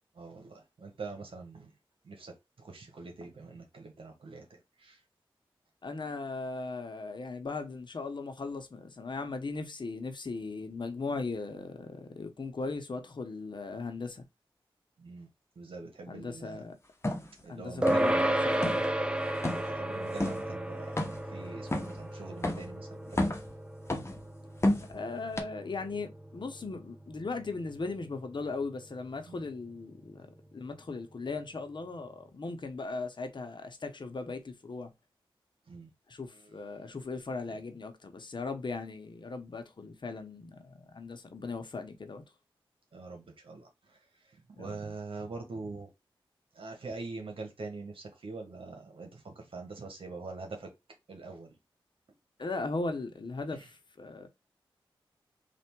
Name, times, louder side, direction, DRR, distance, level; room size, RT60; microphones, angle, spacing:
voice 1, 0.1-1.7 2.0-5.0 15.0-15.3 15.6-16.6 17.4-18.3 19.5-21.0 21.3-23.4 29.3-29.4 35.7-35.9 36.7-36.9 42.9-44.0 44.3-45.9 46.5-50.7 51.1-51.5, right 3 dB, 75° right, 1.1 m, -44 dB
voice 2, 5.8-14.2 16.1-16.7 17.5-18.8 24.9-30.3 30.5-34.9 36.1-42.2 44.6-44.9 52.4-54.3, left 3 dB, 55° left, 0.9 m, -38 dB
sound 1, 17.0-17.3 17.9-18.2 18.5-18.9 19.4-19.7 20.2-20.4 21.0-21.3 21.7-22.0 22.4-22.7 23.1-23.5 23.9-24.2 24.6-25.0 25.4-25.5, left 1 dB, 30° left, 1.0 m, -30 dB
sound 2, 17.8-27.5, right 1 dB, 10° right, 0.5 m, -33 dB
3.4 x 2.5 x 4.5 m
cardioid pair, 45°, 9 cm